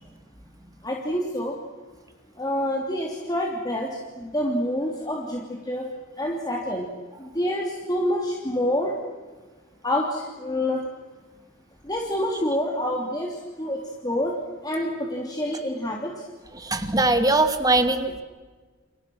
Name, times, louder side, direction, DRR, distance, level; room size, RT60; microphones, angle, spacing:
voice 1, 0.8-1.6 2.4-5.9 6.2-6.9 7.2-9.0 9.8-10.8 11.8-14.4 14.6-16.2, left 1 dB, 20° left, -1 dB, 3.1 m, -27 dB
voice 2, 16.5-18.2, right 2 dB, 15° right, 7 dB, 2.2 m, -21 dB
30.0 x 29.5 x 6.4 m, 1.3 s
head